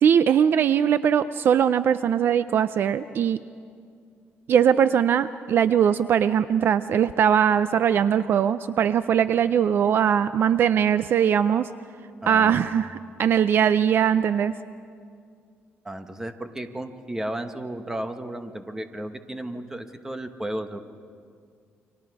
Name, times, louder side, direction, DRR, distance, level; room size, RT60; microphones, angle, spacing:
voice 1, 0.0-3.4 4.5-11.7 12.3-14.5, right 8 dB, 55° right, 13 dB, 0.5 m, -21 dB
voice 2, 12.2-12.8 15.8-20.8, right 1 dB, 10° right, 7 dB, 1.2 m, -34 dB
30.0 x 24.5 x 4.8 m, 2.3 s
cardioid pair, 145°, 5 cm